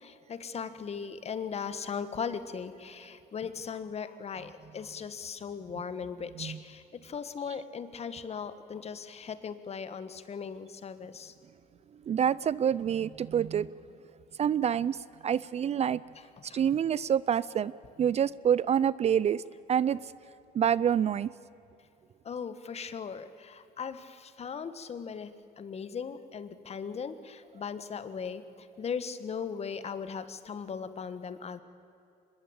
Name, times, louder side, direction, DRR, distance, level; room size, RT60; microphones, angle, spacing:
voice 1, 0.0-11.3 16.2-16.6 22.2-25.3 25.6-31.6, left 6 dB, 40° left, 12 dB, 1.5 m, -38 dB
voice 2, 12.1-13.7 14.4-15.0 15.2-16.0 16.5-17.7 18.0-19.4 19.7-20.0 20.5-21.3, right 8 dB, 40° right, 20 dB, 0.5 m, -26 dB
24.5 x 21.0 x 8.8 m, 2.8 s
cardioid pair, 110°, 17 cm